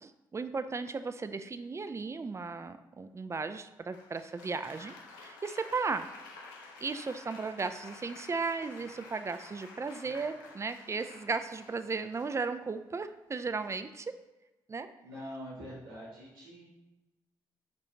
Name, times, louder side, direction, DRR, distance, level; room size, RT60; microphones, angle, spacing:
voice 1, 0.0-4.9 5.2-6.1 6.8-14.1 14.7-14.9, right 4 dB, 25° right, 10 dB, 0.4 m, -35 dB
Applause, 3.9-12.8 13.6-14.0, left 3 dB, 85° left, 0.4 m, -51 dB
voice 2, 15.0-16.7, equal, 90° right, -9 dB, 1.3 m, -44 dB
6.1 x 2.6 x 2.8 m, 1.0 s
hypercardioid pair, 40°, 11 cm